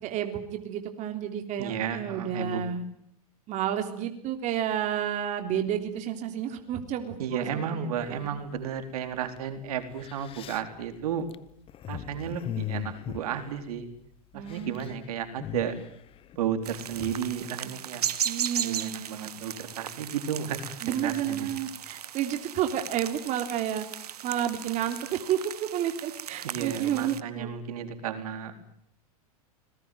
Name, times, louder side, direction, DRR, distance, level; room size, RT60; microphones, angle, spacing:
voice 1, 0.0-2.8 3.5-8.4 14.3-14.9 18.2-19.2 20.8-23.8 24.2-27.5, right 10 dB, 40° right, 6 dB, 3.3 m, -31 dB
voice 2, 1.6-2.6 7.2-11.3 11.9-13.9 14.3-15.8 16.4-18.1 18.5-21.5 26.4-28.5, right 8 dB, 70° right, 8 dB, 4.1 m, -33 dB
sound 1, 8.0-8.6 9.4-9.5 9.8-14.1 14.3-15.0 15.2-17.3, left 12 dB, 30° left, 1.0 m, -39 dB
sound 2, 16.6-27.2, right 10 dB, 90° right, 1.7 m, -37 dB
26.0 x 20.5 x 9.3 m, 0.69 s
hypercardioid pair, 120°, 19 cm